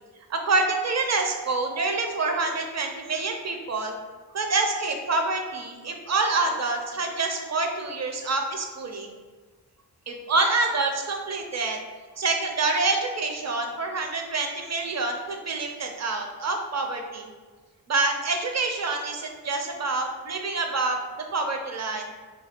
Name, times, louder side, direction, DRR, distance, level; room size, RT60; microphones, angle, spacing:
voice 1, 0.3-3.9 4.3-9.1 10.1-11.8 12.2-17.3 17.9-21.0 21.3-22.1, right 3 dB, 40° right, 3 dB, 0.5 m, -27 dB
2.8 x 2.7 x 4.3 m, 1.4 s
wide cardioid pair, 110°, 41 cm